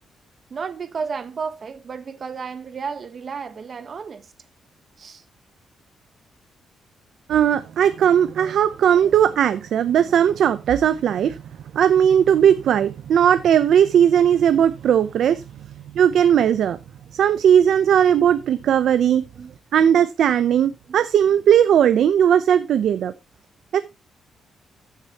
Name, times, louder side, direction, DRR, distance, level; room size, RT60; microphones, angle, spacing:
voice 1, 0.5-4.3 5.0-5.2 12.5-12.7 18.1-18.5 19.1-19.6 20.9-21.0, right 5 dB, 40° right, 1.1 m, -33 dB
voice 2, 7.3-11.4 11.7-15.4 15.9-16.8 17.1-19.2 19.7-23.1 23.7-23.8, right 9 dB, 70° right, 0.6 m, -17 dB
15.0 x 6.8 x 2.9 m
cardioid pair, 130°, 0 cm